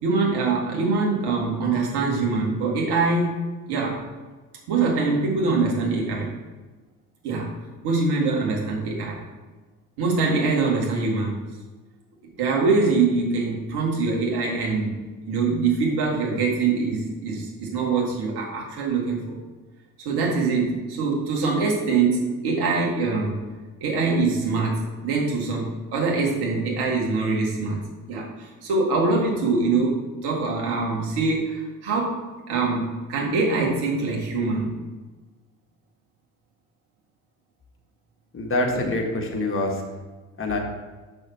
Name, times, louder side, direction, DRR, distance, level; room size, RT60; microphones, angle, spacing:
voice 1, 0.0-3.4 3.7-4.0 4.7-6.4 7.2-7.5 7.8-9.2 10.0-11.4 12.4-15.0 15.3-19.4 20.0-23.5 23.8-27.8 28.1-32.2 32.5-34.7 38.7-38.9, right 4 dB, 60° right, -2 dB, 2.1 m, -24 dB
voice 2, 38.3-39.8 40.4-40.6, left 2 dB, 30° left, 0 dB, 1.7 m, -25 dB
6.3 x 6.0 x 4.3 m, 1.3 s
figure-of-eight pair, 55°, 45 cm